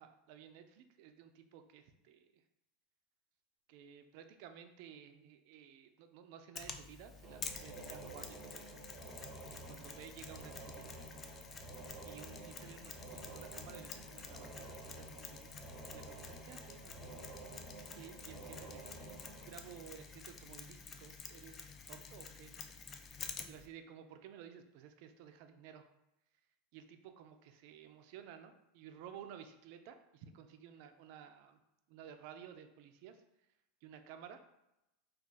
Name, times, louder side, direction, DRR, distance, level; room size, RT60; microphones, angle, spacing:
voice 1, 0.0-2.4 3.7-8.8 9.6-11.2 12.1-15.5 15.9-17.3 18.0-21.6 21.9-22.7 23.5-25.9 26.7-31.6 31.9-33.2 33.8-34.4, right 8 dB, 60° right, 7 dB, 0.4 m, -54 dB
Mechanisms, 6.6-23.7, left 5 dB, 30° left, 0.3 m, -50 dB
sound 1, 7.2-20.7, right 2 dB, 30° right, 0.7 m, -51 dB
2.4 x 2.3 x 3.9 m, 0.88 s
hypercardioid pair, 110°, 0 cm